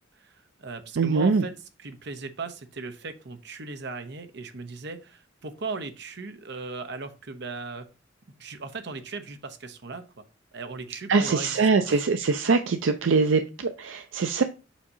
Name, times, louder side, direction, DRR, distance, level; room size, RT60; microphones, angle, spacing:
voice 1, 0.2-1.5 1.8-7.9 8.4-10.0 10.5-12.0, right 3 dB, 60° right, 0.9 m, -38 dB
voice 2, 1.0-1.4 11.1-14.4, right 4 dB, 80° right, 0.5 m, -23 dB
7.2 x 2.8 x 5.4 m
head